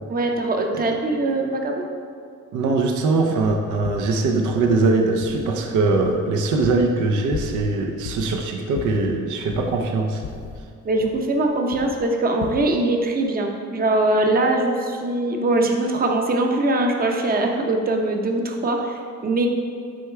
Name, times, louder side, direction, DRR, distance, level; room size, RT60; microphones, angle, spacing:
voice 1, 0.1-1.9 10.8-19.5, right 2 dB, 30° right, 2 dB, 0.7 m, -22 dB
voice 2, 2.5-10.2, right 3 dB, 80° right, 2 dB, 0.7 m, -21 dB
sound 1, 3.4-3.5 3.8-4.1 4.5-4.8 5.2-5.6 6.0-7.0 7.3-7.8 8.1-8.4 8.8-9.9 10.2-11.5 11.7-12.0 12.4-12.7, left 6 dB, 60° left, 0.5 m, -35 dB
6.4 x 3.7 x 4.5 m, 2.3 s
cardioid pair, 90°, 30 cm